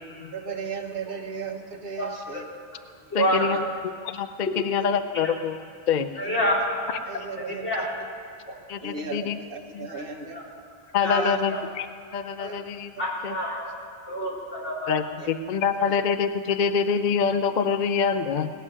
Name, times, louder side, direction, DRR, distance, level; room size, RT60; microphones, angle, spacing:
voice 1, 0.3-2.4 3.2-3.6 4.8-4.9 6.2-6.4 7.0-7.7 8.8-10.4 11.0-11.4 12.4-12.6 15.2-15.3 15.9-16.0, right 5 dB, 55° right, 3 dB, 1.4 m, -35 dB
voice 2, 2.0-2.4 3.1-3.5 5.2-5.3 6.2-6.9 7.6-7.9 9.9-10.0 10.3-10.4 11.0-11.2 11.5-11.6 13.0-13.6 14.1-15.0, equal, 85° left, -6 dB, 3.9 m, -27 dB
voice 3, 3.1-3.7 4.0-5.6 5.9-6.1 7.1-7.3 8.7-9.4 9.7-9.9 10.9-11.9 12.1-12.9 13.2-13.4 14.9-18.5, left 6 dB, 55° left, 10 dB, 0.6 m, -25 dB
18.0 x 7.2 x 9.7 m, 2.2 s
omnidirectional pair, 1.1 m